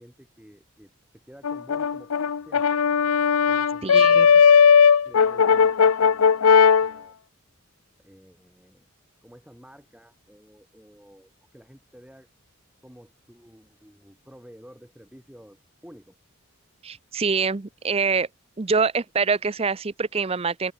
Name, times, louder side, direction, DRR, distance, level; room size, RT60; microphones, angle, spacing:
voice 1, 0.0-2.8 3.5-4.4 5.0-7.1 8.0-8.9 9.2-12.3 12.8-16.1, equal, 5° right, 4.7 m, -51 dB
Brass instrument, 1.4-6.9, left 6 dB, 80° left, 0.6 m, -17 dB
voice 2, 3.8-4.3 16.8-18.3 18.6-20.7, right 5 dB, 25° right, 0.5 m, -25 dB
open air
head